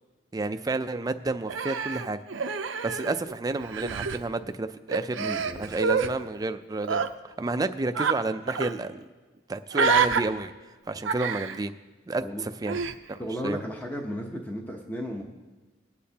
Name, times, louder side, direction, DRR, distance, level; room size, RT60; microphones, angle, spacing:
voice 1, 0.3-2.2 2.8-5.2 5.6-9.1 9.5-10.5 10.9-11.7 12.1-12.8 13.1-13.6, right 2 dB, 20° right, 9 dB, 0.4 m, -30 dB
Human voice, 1.5-3.3 3.6-4.2 4.9-6.1 6.8-7.1 7.9-8.2 8.5-8.7 9.7-10.2 11.0-11.6 12.7-12.9, right 5 dB, 90° right, 0.6 m, -27 dB
voice 2, 5.2-5.7 12.2-12.4 13.2-15.2, equal, 10° left, 1 dB, 0.8 m, -34 dB
19.5 x 8.4 x 2.8 m, 1.3 s
head